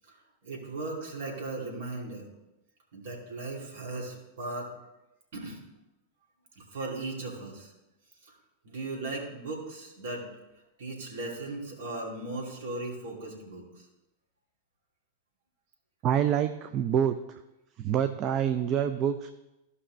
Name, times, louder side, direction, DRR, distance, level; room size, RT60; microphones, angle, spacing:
voice 1, 0.4-2.3 2.9-4.7 5.3-5.6 6.6-7.7 8.3-8.4 8.6-10.3 10.8-13.9, right 2 dB, 55° right, -2 dB, 2.5 m, -37 dB
voice 2, 16.0-17.1 17.8-19.3, right 9 dB, 35° right, 10 dB, 0.4 m, -26 dB
15.0 x 5.4 x 3.2 m, 0.95 s
figure-of-eight pair, 90°, 0 cm